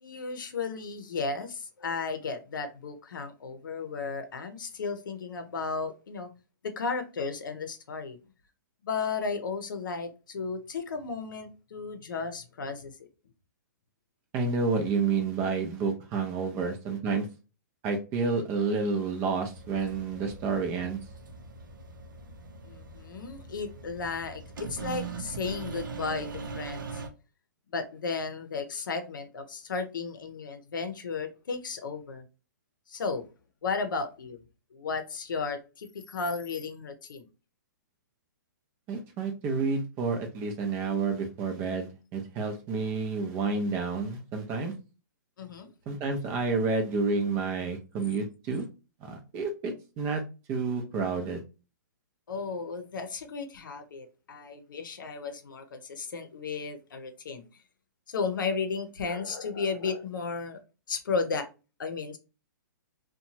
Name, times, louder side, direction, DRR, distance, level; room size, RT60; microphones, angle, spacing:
voice 1, 0.0-6.3 6.6-8.2 8.8-13.1 22.6-26.3 26.5-27.0 27.7-32.2 32.9-33.2 33.6-34.4 34.7-37.3 45.4-45.7 52.3-57.4 58.1-60.6 60.9-61.5 61.8-62.2, left 4 dB, 85° left, 0.6 m, -34 dB
voice 2, 14.3-17.3 17.8-21.0 38.9-44.7 45.9-48.7 49.0-50.2 50.5-51.4, right 4 dB, 20° right, 0.5 m, -29 dB
sound 1, 19.5-27.1, right 4 dB, 90° right, 0.6 m, -41 dB
2.8 x 2.2 x 2.7 m
hypercardioid pair, 155°, 10 cm